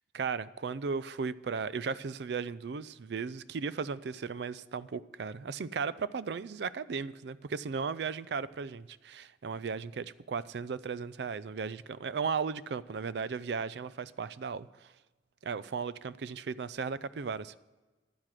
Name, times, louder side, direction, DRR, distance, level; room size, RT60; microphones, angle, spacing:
voice 1, 0.1-14.9 15.4-17.6, right 5 dB, 70° right, 18 dB, 0.4 m, -36 dB
11.0 x 9.7 x 7.4 m, 1.2 s
head